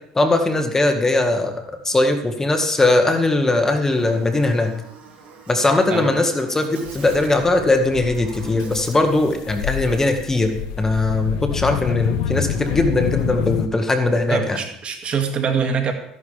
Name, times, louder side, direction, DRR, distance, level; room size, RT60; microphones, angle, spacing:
voice 1, 0.2-4.7 5.5-14.6, left 2 dB, 15° left, 5 dB, 1.7 m, -20 dB
Buzz, 3.9-9.5, right 5 dB, 60° right, 3.6 m, -42 dB
sound 1, 6.9-13.7, left 9 dB, 90° left, 0.7 m, -28 dB
voice 2, 14.3-15.9, right 6 dB, 45° right, 4 dB, 2.2 m, -23 dB
13.0 x 11.0 x 3.5 m, 0.73 s
supercardioid pair, 95°, 3 cm